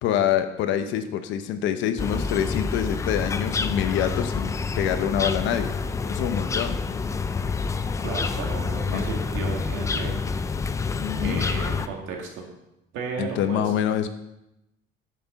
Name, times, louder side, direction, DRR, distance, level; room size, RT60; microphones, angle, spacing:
voice 1, 0.0-5.7 6.1-6.8 8.9-9.1 11.0-11.4 13.2-14.1, left 9 dB, 70° left, 9 dB, 0.9 m, -26 dB
sound 1, 2.0-11.9, left 4 dB, 15° left, 0.4 m, -28 dB
voice 2, 8.0-10.2 11.2-12.5 12.9-13.6, right 4 dB, 75° right, 1 dB, 2.3 m, -34 dB
9.2 x 6.9 x 5.3 m, 0.89 s
cardioid pair, 150°, 20 cm